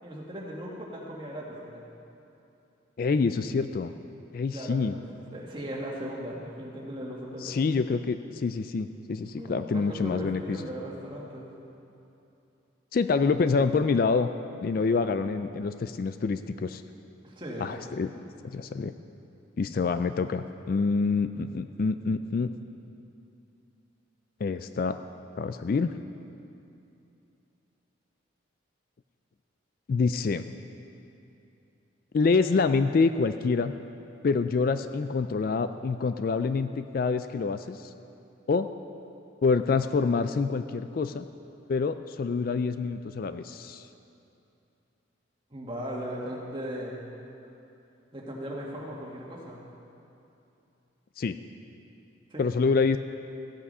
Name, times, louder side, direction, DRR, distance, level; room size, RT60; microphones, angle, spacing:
voice 1, 0.0-1.9 4.5-4.8 5.3-7.6 9.4-11.5 17.2-17.8 45.5-47.0 48.1-49.6 52.3-52.5, equal, 25° right, -4 dB, 1.8 m, -37 dB
voice 2, 3.0-3.9 4.3-5.0 7.4-10.6 12.9-14.3 14.6-16.8 17.6-18.1 18.4-18.9 19.6-22.5 24.4-25.0 25.4-25.9 29.9-30.4 32.1-33.7 34.2-37.9 38.5-38.7 39.4-41.3 41.7-43.9 51.2-51.4 52.4-53.0, left 4 dB, 50° left, 10 dB, 0.3 m, -26 dB
15.0 x 8.5 x 5.5 m, 2.8 s
head